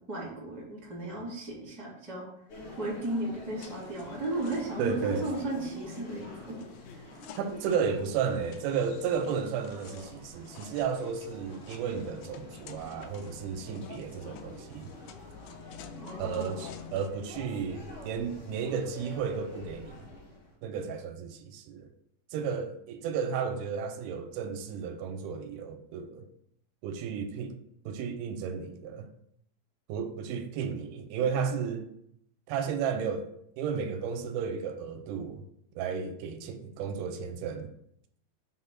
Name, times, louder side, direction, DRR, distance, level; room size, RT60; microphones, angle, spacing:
voice 1, 0.0-2.2 2.8-6.6 6.9-7.2 16.0-16.6, right 2 dB, ahead, 0.7 m, -35 dB
sound 1, 2.5-20.5, left 1 dB, 40° left, 2.4 m, -47 dB
sound 2, 3.6-17.1, left 9 dB, 80° left, 2.1 m, -50 dB
voice 2, 4.8-5.2 7.4-14.9 16.2-20.0 20.6-21.9 22.3-26.3 26.8-27.6 27.9-29.1 29.9-31.9 32.5-33.3 33.6-35.4 35.8-37.7, right 6 dB, 85° right, 2.5 m, -33 dB
5.8 x 3.5 x 5.7 m
omnidirectional pair, 4.3 m